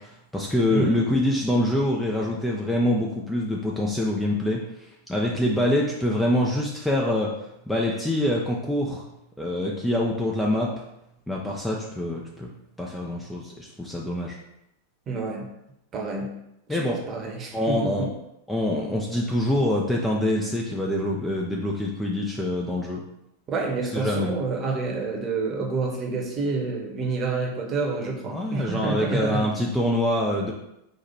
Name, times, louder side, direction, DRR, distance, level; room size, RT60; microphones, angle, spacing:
voice 1, 0.0-7.3 7.7-9.0 9.4-10.7 11.3-12.5 12.8-14.4 16.7-17.0 17.5-18.1 18.5-23.0 23.9-24.3 28.3-30.5, left 1 dB, 5° left, -3 dB, 0.5 m, -25 dB
voice 2, 0.7-1.0 15.1-15.5 15.9-16.4 16.7-18.1 23.5-29.5, right 4 dB, 25° right, -1 dB, 1.0 m, -28 dB
4.5 x 2.4 x 4.3 m, 0.84 s
figure-of-eight pair, 90°, 0 cm